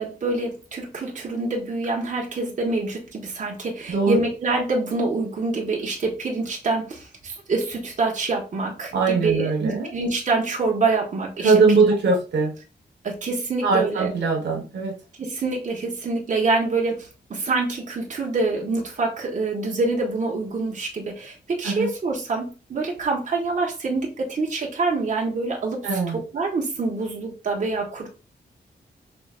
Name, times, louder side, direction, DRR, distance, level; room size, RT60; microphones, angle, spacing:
voice 1, 0.0-11.5 13.0-14.1 15.2-28.1, right 3 dB, 45° right, -1 dB, 1.4 m, -26 dB
voice 2, 8.9-9.9 11.4-12.5 13.6-15.0 21.6-21.9 25.8-26.2, right 4 dB, 85° right, 1 dB, 1.4 m, -21 dB
6.0 x 3.2 x 2.5 m, 0.32 s
wide cardioid pair, 145°, 18 cm